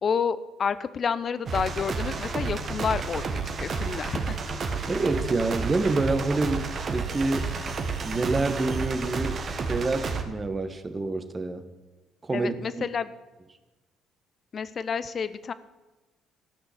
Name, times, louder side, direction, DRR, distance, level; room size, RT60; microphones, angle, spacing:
voice 1, 0.0-4.4 12.3-13.1 14.5-15.5, left 6 dB, 50° left, 15 dB, 0.7 m, -29 dB
sound 1, 1.5-10.2, right 4 dB, 50° right, 1.5 m, -31 dB
voice 2, 4.9-7.5 8.0-9.4 9.7-11.6 12.2-12.8, right 3 dB, 30° right, 9 dB, 1.4 m, -27 dB
13.5 x 6.1 x 8.3 m, 1.1 s
hypercardioid pair, 60°, 0 cm